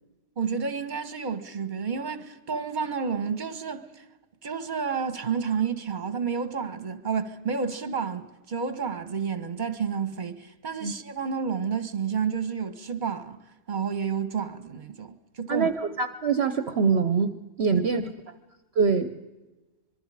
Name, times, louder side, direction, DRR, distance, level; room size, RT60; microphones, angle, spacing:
voice 1, 0.4-3.9 4.4-13.4 13.7-15.7 17.7-18.1, right 6 dB, 40° right, 1.4 m, -30 dB
voice 2, 15.5-18.0 18.8-19.2, right 5 dB, 60° right, 1.1 m, -24 dB
26.0 x 22.5 x 4.9 m
omnidirectional pair, 1.3 m